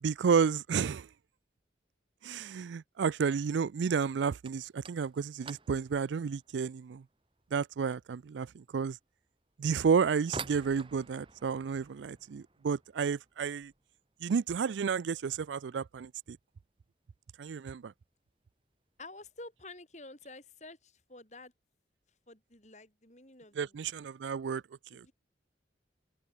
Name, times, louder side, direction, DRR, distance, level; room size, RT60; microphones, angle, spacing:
voice 1, 0.0-1.1 2.2-7.0 7.5-9.0 9.6-13.7 14.2-16.4 17.4-17.9 23.5-24.6 24.9-25.1, right 6 dB, 90° right, 0.4 m, -31 dB
sound 1, 4.4-15.1 15.4-16.0 16.2-16.5 16.9-17.0 17.7-17.8 18.7-18.9 19.2-19.7, right 4 dB, 30° right, 2.7 m, -50 dB
voice 2, 19.0-21.5 22.3-23.8 24.9-25.1, left 2 dB, 40° left, 6.7 m, -50 dB
open air
head